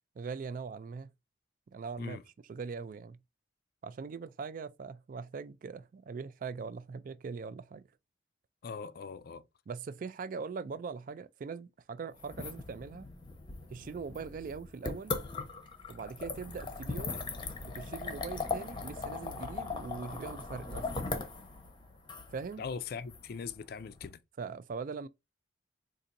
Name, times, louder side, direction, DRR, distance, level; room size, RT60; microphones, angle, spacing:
voice 1, 0.2-1.1 1.7-2.2 2.5-3.2 3.8-7.8 9.7-13.1 13.7-15.1 15.9-17.2 17.7-21.1 22.3-22.6 24.4-25.1, right 5 dB, 45° right, 0.3 m, -41 dB
voice 2, 8.6-9.4 22.6-24.2, left 5 dB, 55° left, 0.4 m, -40 dB
sound 1, 12.2-24.1, left 3 dB, 25° left, 0.7 m, -39 dB
4.0 x 2.5 x 2.5 m
head